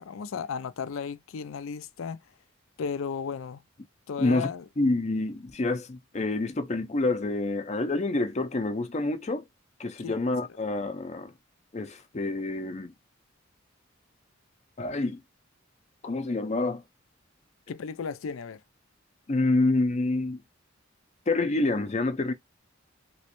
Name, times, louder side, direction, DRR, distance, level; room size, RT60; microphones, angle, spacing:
voice 1, 0.0-2.2 2.8-3.6 4.1-4.6 10.0-10.2 17.7-18.6, left 6 dB, 80° left, 0.4 m, -34 dB
voice 2, 4.2-4.5 4.8-9.5 9.8-11.3 11.7-12.9 14.8-15.2 16.0-16.8 19.3-20.4 21.3-22.3, left 2 dB, 35° left, 0.6 m, -27 dB
3.1 x 3.0 x 3.0 m
head